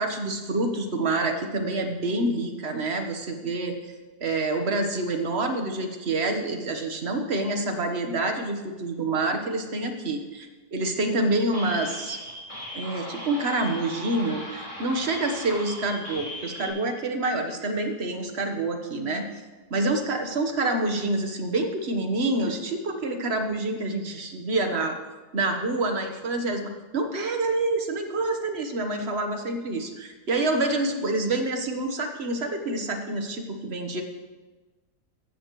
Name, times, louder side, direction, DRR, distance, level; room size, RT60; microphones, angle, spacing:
voice 1, 0.0-3.8 4.2-12.2 12.7-19.3 19.7-24.9 25.3-26.6 26.9-34.0, right 2 dB, 45° right, 5 dB, 1.5 m, -27 dB
sound 1, 11.5-16.7, equal, 20° left, 4.3 m, -38 dB
15.0 x 13.5 x 3.2 m, 1.2 s
omnidirectional pair, 1.7 m